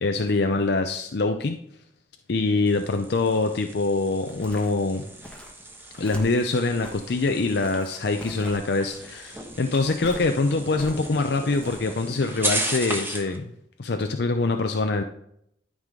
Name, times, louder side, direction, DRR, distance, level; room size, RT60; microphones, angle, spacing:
voice 1, 0.0-1.6 2.3-5.0 6.0-13.5 13.8-15.0, left 3 dB, 65° left, 5 dB, 0.6 m, -24 dB
sound 1, 2.7-13.4, right 2 dB, 10° right, 1.2 m, -36 dB
sound 2, 4.2-13.0 13.4-13.5, equal, 5° left, 1.3 m, -45 dB
13.0 x 4.9 x 3.8 m, 0.71 s
head